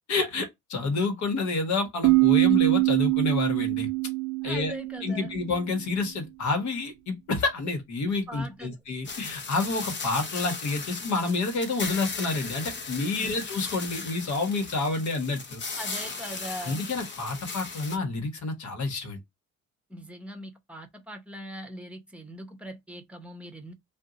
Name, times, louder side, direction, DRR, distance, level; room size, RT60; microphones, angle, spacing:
voice 1, 0.1-3.9 4.4-4.7 5.0-15.6 16.6-19.2, left 3 dB, 70° left, 1.1 m, -29 dB
sound 1, 2.0-5.6, right 25 dB, 85° right, 0.5 m, -24 dB
voice 2, 4.4-5.3 8.3-8.8 13.1-13.3 15.8-16.8 19.9-23.7, equal, 5° right, 0.8 m, -41 dB
sound 2, 9.0-18.0, left 4 dB, 40° left, 0.7 m, -37 dB
2.6 x 2.2 x 3.7 m
cardioid pair, 90°, 30 cm